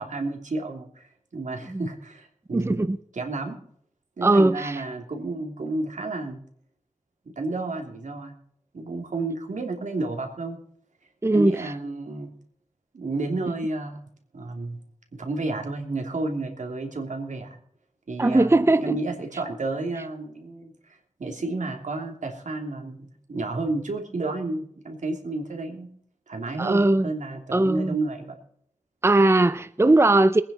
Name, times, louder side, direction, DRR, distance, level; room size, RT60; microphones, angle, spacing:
voice 1, 0.0-2.8 3.1-3.6 4.2-6.4 7.2-8.3 8.7-10.6 11.3-12.3 12.9-14.0 14.3-14.8 15.1-17.6 18.1-25.9 26.3-28.4, right 2 dB, 75° right, 3.0 m, -31 dB
voice 2, 2.5-3.0 4.2-4.8 11.2-11.7 18.2-19.0 26.6-27.1 27.5-28.0 29.0-30.4, right 2 dB, 20° right, 0.6 m, -19 dB
22.0 x 9.9 x 4.3 m
cardioid pair, 55°, 13 cm